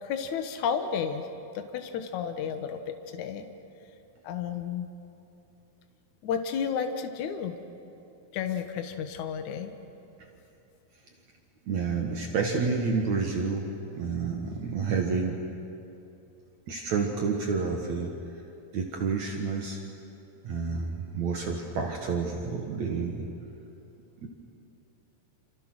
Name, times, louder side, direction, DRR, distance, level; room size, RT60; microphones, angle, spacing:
voice 1, 0.0-1.2 1.6-3.5 4.2-4.9 6.2-7.6 8.3-9.7, left 7 dB, 65° left, 6 dB, 2.5 m, -32 dB
voice 2, 11.7-13.7 13.9-15.4 16.7-18.1 18.7-19.8 20.4-23.3 24.2-24.3, right 5 dB, 60° right, 1 dB, 2.7 m, -29 dB
28.5 x 27.5 x 6.3 m, 2.8 s
omnidirectional pair, 4.0 m